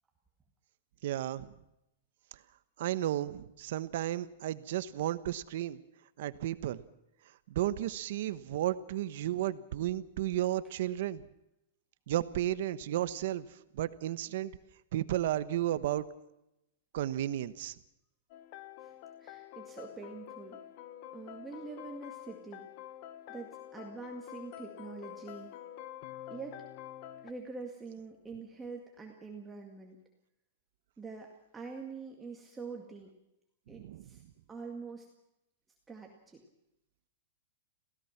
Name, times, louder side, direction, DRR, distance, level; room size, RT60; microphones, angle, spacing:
voice 1, 1.0-1.5 2.8-5.8 6.2-6.8 7.5-11.2 12.1-13.5 13.7-14.6 14.9-16.0 16.9-17.7 33.7-34.1, right 13 dB, 55° right, 14 dB, 1.2 m, -33 dB
sound 1, 18.3-27.3, left 12 dB, 40° left, 1.3 m, -47 dB
voice 2, 18.8-20.6 21.1-22.7 23.3-25.5 26.3-26.6 27.2-30.0 31.0-33.1 33.7-34.2 34.5-35.1 35.9-36.4, right 4 dB, 10° right, 0 dB, 2.1 m, -45 dB
27.5 x 16.5 x 6.0 m, 0.86 s
supercardioid pair, 165°, 0 cm